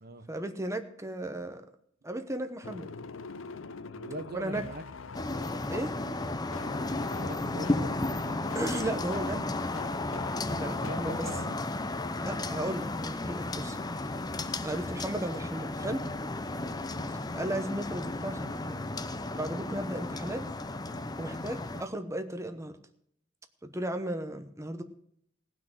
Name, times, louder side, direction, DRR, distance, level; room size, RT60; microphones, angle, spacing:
voice 1, 0.3-1.7 2.0-2.9 4.3-4.6 5.7-5.9 8.5-9.6 10.6-11.3 12.2-13.8 14.6-16.0 17.3-18.9 19.4-20.5 21.2-22.8 23.6-24.8, right 1 dB, 15° right, 1.0 m, -35 dB
sound 1, 2.6-11.5, left 4 dB, 75° left, 0.7 m, -45 dB
voice 2, 4.0-4.8 7.1-8.5 10.7-11.6 16.9-17.1, right 2 dB, 50° right, 1.0 m, -41 dB
sound 2, 5.1-21.8, left 2 dB, 20° left, 0.7 m, -34 dB
17.5 x 6.2 x 7.7 m
head